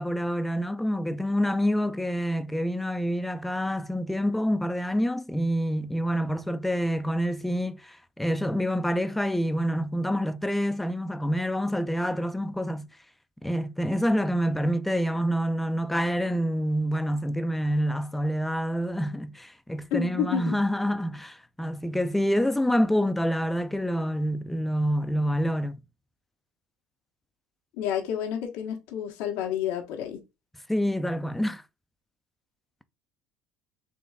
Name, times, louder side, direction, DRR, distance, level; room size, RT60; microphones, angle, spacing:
voice 1, 0.0-12.9 13.4-25.8 30.7-31.6, equal, 5° left, 0.4 m, -27 dB
voice 2, 19.9-20.6 27.8-30.2, left 9 dB, 75° left, 1.1 m, -30 dB
3.9 x 3.1 x 3.4 m
supercardioid pair, 95°, 3 cm